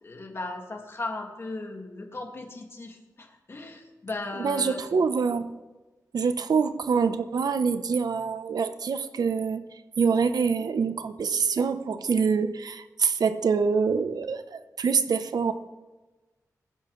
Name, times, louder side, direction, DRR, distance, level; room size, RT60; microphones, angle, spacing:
voice 1, 0.0-4.8, left 2 dB, 40° left, 2 dB, 2.1 m, -37 dB
voice 2, 4.4-5.5 6.1-9.6 10.0-15.5, right 5 dB, 85° right, 11 dB, 0.8 m, -25 dB
21.0 x 11.0 x 3.2 m, 1.2 s
wide cardioid pair, 145°, 7 cm